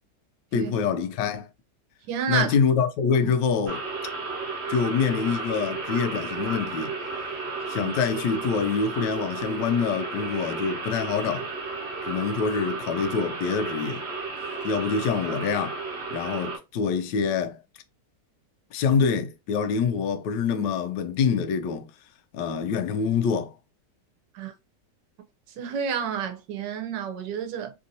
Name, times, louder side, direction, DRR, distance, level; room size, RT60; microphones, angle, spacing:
voice 1, 0.5-1.5 2.3-3.8 4.7-6.9 7.7-11.5 12.0-14.0 14.6-15.8 16.1-17.6 18.7-21.9 22.3-23.5, left 6 dB, 90° left, 1.2 m, -25 dB
voice 2, 2.1-2.6 3.2-3.3 7.8-7.9 24.3-24.5 25.6-27.7, right 7 dB, 90° right, 1.3 m, -30 dB
sound 1, 3.7-16.6, right 4 dB, 45° right, 1.1 m, -33 dB
3.4 x 2.7 x 2.5 m
omnidirectional pair, 1.8 m